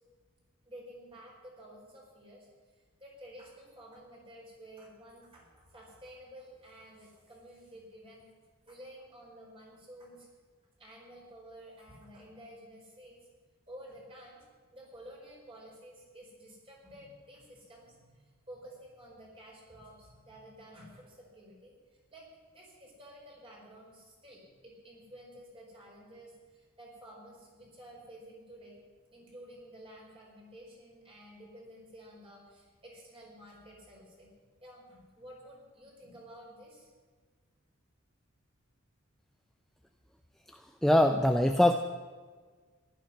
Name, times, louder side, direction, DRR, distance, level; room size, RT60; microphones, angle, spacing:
voice 1, 0.6-2.5 3.0-8.3 8.7-10.3 10.8-13.2 13.7-14.4 14.7-21.7 22.1-22.2 22.5-28.8 29.1-34.3 34.6-36.9, equal, 25° right, -2 dB, 4.4 m, -52 dB
voice 2, 40.8-41.7, left 1 dB, ahead, 5 dB, 0.4 m, -22 dB
15.0 x 11.5 x 5.6 m, 1.5 s
head